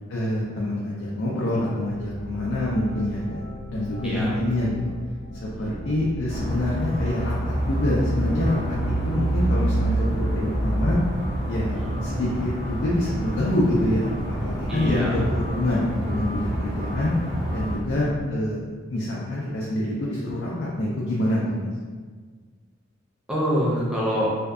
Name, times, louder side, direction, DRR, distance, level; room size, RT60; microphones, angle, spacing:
voice 1, 0.1-4.9 5.6-11.0 11.5-11.8 12.0-14.1 14.4-17.1 17.5-18.6 18.9-21.7, left 1 dB, 55° left, -6 dB, 0.4 m, -26 dB
sound 1, 1.8-18.2, right 1 dB, 85° right, 1.0 m, -38 dB
sound 2, 6.3-17.8, right 1 dB, 65° right, 0.7 m, -27 dB
voice 2, 14.7-15.2 23.3-24.3, equal, 5° right, -7 dB, 0.5 m, -26 dB
2.6 x 2.3 x 2.2 m, 1.5 s
head